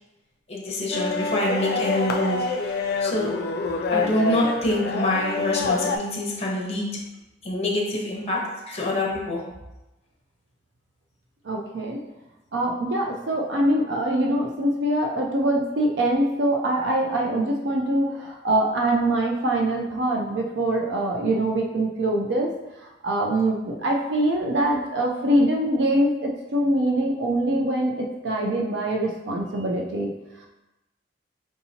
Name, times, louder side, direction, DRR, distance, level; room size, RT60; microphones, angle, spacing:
voice 1, 0.5-3.3 3.9-6.9 7.4-9.4, left 1 dB, 35° left, -2 dB, 0.9 m, -26 dB
sound 1, 0.9-6.0, left 3 dB, 60° left, 0.3 m, -26 dB
voice 2, 11.4-12.0 12.5-22.5 22.8-30.1, right 1 dB, 70° right, -1 dB, 0.5 m, -24 dB
4.5 x 2.8 x 2.7 m, 1.0 s
head